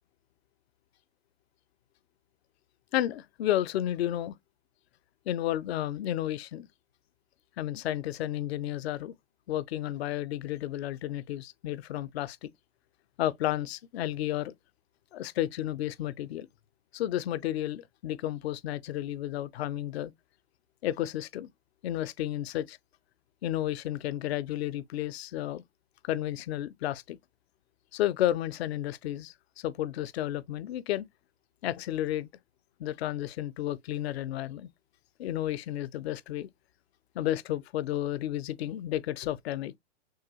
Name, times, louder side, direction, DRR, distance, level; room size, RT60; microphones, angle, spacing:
voice 1, 2.9-4.3 5.3-6.7 7.6-9.1 9.5-12.5 13.2-14.5 15.1-16.5 16.9-20.1 20.8-21.5 21.8-22.8 23.4-25.6 26.0-27.2 27.9-31.1 31.6-32.3 32.8-34.7 35.2-36.5 37.1-39.8, left 13 dB, 60° left, 0.6 m, -32 dB
6.4 x 2.3 x 2.9 m
hypercardioid pair, 120°, 35 cm